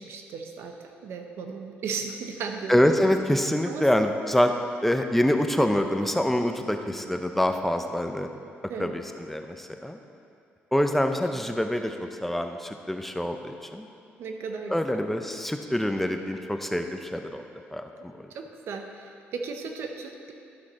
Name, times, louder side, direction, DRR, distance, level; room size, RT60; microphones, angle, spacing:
voice 1, 0.0-2.8 3.6-3.9 8.7-8.9 14.2-15.0 18.3-20.3, right 5 dB, 70° right, 4 dB, 0.9 m, -36 dB
voice 2, 2.7-4.5 4.8-8.3 8.8-10.0 10.7-13.9 14.7-17.5 17.7-18.3, left 1 dB, 5° left, 5 dB, 0.7 m, -25 dB
12.0 x 6.1 x 4.3 m, 2.6 s
cardioid pair, 85°, 4 cm